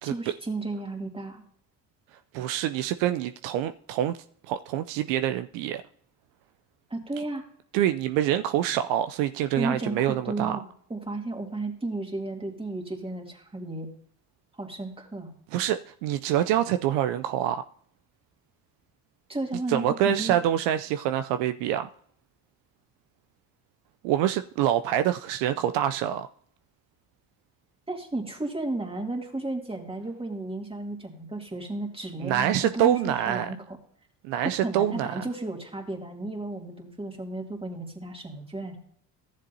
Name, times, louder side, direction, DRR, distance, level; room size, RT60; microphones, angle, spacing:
voice 1, 0.1-1.4 6.9-7.4 9.6-13.9 14.6-15.3 19.3-20.4 27.9-33.6 34.6-38.8, right 2 dB, 10° right, 2.6 m, -33 dB
voice 2, 2.3-4.2 4.5-5.8 7.7-10.6 15.5-17.6 19.7-21.9 24.0-26.3 32.2-33.5 34.2-35.2, right 11 dB, 65° right, 0.6 m, -26 dB
14.5 x 7.4 x 2.8 m
hypercardioid pair, 60°, 46 cm